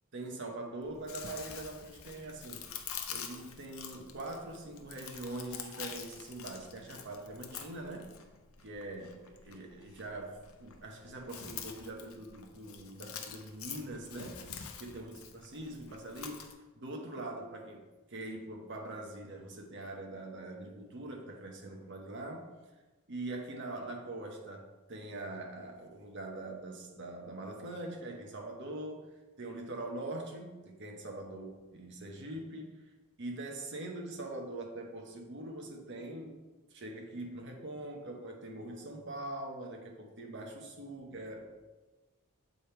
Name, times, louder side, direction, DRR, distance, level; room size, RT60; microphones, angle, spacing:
voice 1, 0.1-2.7 3.1-8.1 8.6-14.5 14.8-17.8 18.1-22.5 23.1-29.1 29.4-32.8 33.2-36.4 36.7-41.5, right 2 dB, 55° right, 2 dB, 1.0 m, -43 dB
Chewing mastication, 0.8-16.5, left 7 dB, 65° left, 0.7 m, -47 dB
7.7 x 3.4 x 4.4 m, 1.2 s
head